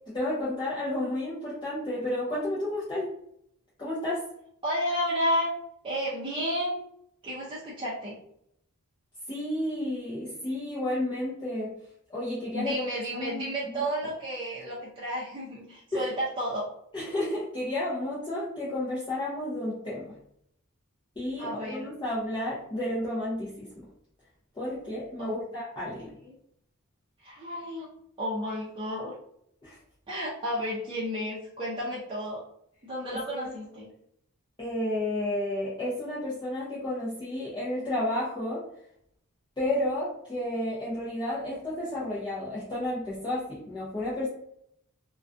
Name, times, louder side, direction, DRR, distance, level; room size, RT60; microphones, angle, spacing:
voice 1, 0.1-3.1 3.8-4.2 9.3-11.7 12.1-12.7 13.1-13.4 13.7-13.8 15.9-16.1 16.9-20.1 21.2-23.8 24.5-26.1 29.6-29.8 33.1-33.5 34.6-38.6 39.6-44.3, left 1 dB, 20° left, -9 dB, 0.6 m, -31 dB
voice 2, 4.6-5.5 5.8-6.8 7.2-8.2 12.5-16.7 21.4-21.8 25.2-25.4 26.2-26.4 27.2-27.9 28.2-29.1 30.1-32.4 32.8-33.9, equal, 25° right, -9 dB, 0.6 m, -32 dB
2.3 x 2.2 x 2.5 m, 0.72 s
head